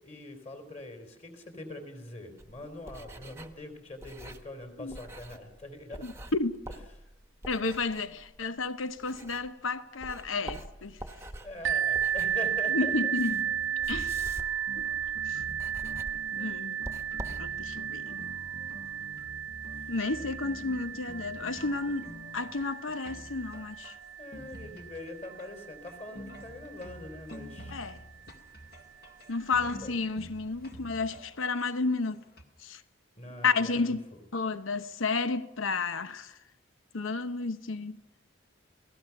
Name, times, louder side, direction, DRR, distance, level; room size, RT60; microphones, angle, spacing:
voice 1, 0.0-6.2 7.0-7.1 11.4-13.1 20.4-20.8 23.0-23.2 24.2-27.8 29.5-29.9 33.2-34.0, left 2 dB, 35° left, 3.7 m, -43 dB
sound 1, 2.4-9.7 10.0-17.9, right 1 dB, 15° right, 1.1 m, -46 dB
voice 2, 6.0-6.5 7.5-11.0 12.7-13.4 13.9-14.2 14.8-14.9 15.3-15.4 16.3-16.8 17.4-18.2 19.9-22.1 22.3-23.9 27.7-28.0 29.3-32.2 32.6-32.8 33.4-34.0 34.3-36.3 36.9-38.0, left 4 dB, 80° left, 1.0 m, -31 dB
sound 2, 11.6-27.2 28.0-28.1 28.6-28.7, right 9 dB, 65° right, 0.8 m, -34 dB
sound 3, 12.8-32.4, equal, 50° left, 2.2 m, -48 dB
29.0 x 18.0 x 6.0 m
head